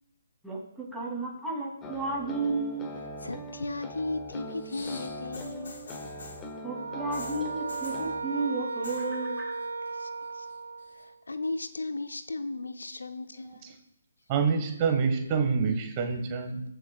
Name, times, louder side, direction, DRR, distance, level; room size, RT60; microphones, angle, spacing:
voice 1, 0.4-3.0 6.6-9.6, right 3 dB, ahead, -4 dB, 2.6 m, -33 dB
sound 1, 1.8-8.2, equal, 15° left, 1.3 m, -41 dB
voice 2, 3.2-5.8 9.9-10.5 10.9-13.8, left 2 dB, 80° left, 10 dB, 0.7 m, -36 dB
sound 2, 4.5-6.5 7.1-8.1 8.7-9.1 9.4-9.9 10.2-11.0 11.8-11.9, left 3 dB, 65° left, 2.5 m, -46 dB
sound 3, 6.7-11.2, right 3 dB, 75° right, 0.6 m, -36 dB
voice 3, 13.4-13.7 14.3-16.6, right 5 dB, 30° right, 5 dB, 1.3 m, -27 dB
15.5 x 6.5 x 2.3 m, 0.79 s
figure-of-eight pair, 145°, 0 cm